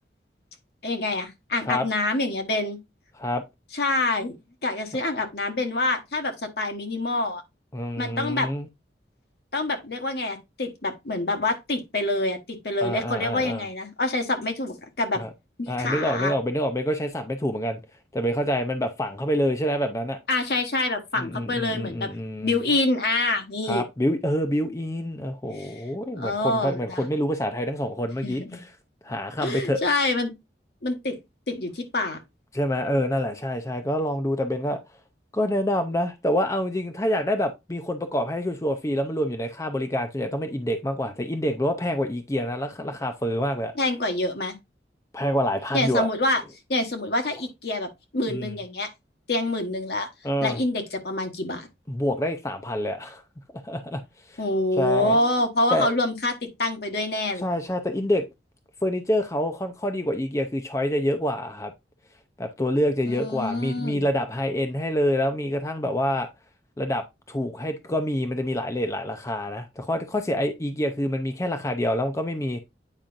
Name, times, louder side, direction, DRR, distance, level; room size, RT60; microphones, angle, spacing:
voice 1, 0.8-2.8 3.7-4.4 4.6-7.4 8.0-8.5 9.5-15.2 15.6-16.3 20.3-22.1 22.4-23.8 25.5-25.8 26.1-27.1 28.2-28.6 29.4-30.3 30.8-31.2 31.5-32.2 43.8-44.6 45.7-46.4 46.7-48.9 49.3-50.1 50.4-51.7 54.4-57.5 63.0-64.1, left 2 dB, 65° left, 1.2 m, -26 dB
voice 2, 7.7-8.7 12.8-13.7 15.1-15.3 15.7-17.8 18.1-20.2 21.2-22.6 23.7-28.6 29.0-29.8 32.5-34.8 35.3-43.7 45.1-46.1 48.3-48.5 50.2-50.6 51.9-53.2 53.6-54.0 54.3-54.4 54.8-55.2 55.7-55.9 57.4-58.2 58.8-61.7 62.4-66.3 66.8-72.6, equal, 20° left, 0.5 m, -27 dB
8.9 x 4.8 x 2.5 m
head